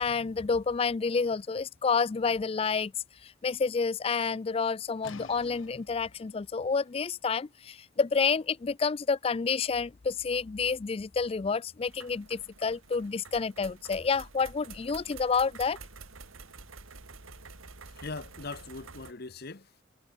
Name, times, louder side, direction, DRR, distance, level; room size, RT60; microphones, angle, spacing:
voice 1, 0.0-2.9 3.2-15.8, left 5 dB, 30° left, 0.3 m, -29 dB
sound 1, 5.0-10.7, left 3 dB, 80° left, 2.0 m, -54 dB
sound 2, 11.9-19.1, right 4 dB, 90° right, 2.9 m, -49 dB
voice 2, 17.9-19.8, left 3 dB, 50° left, 1.2 m, -41 dB
head